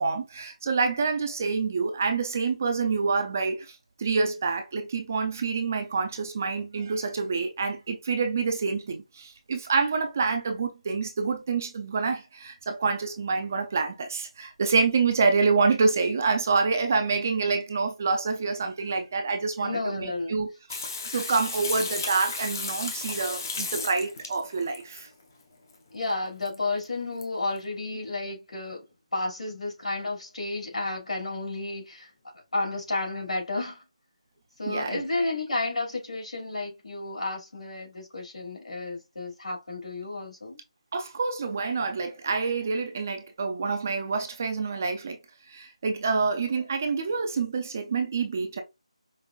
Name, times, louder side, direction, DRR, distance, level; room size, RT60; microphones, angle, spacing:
voice 1, 0.0-20.8 21.1-25.1 34.7-35.0 40.9-45.2 45.5-48.6, right 4 dB, 25° right, 0.4 m, -27 dB
voice 2, 19.6-20.3 25.9-28.9 29.1-32.1 32.5-33.8 34.6-40.6, left 2 dB, 90° left, 2.4 m, -32 dB
Water tap faucet / Sink (filling or washing), 20.7-25.0 26.5-26.6 26.8-26.9 27.2-27.3, left 4 dB, 30° left, 0.6 m, -34 dB
5.2 x 2.5 x 2.3 m
figure-of-eight pair, 175°, 4 cm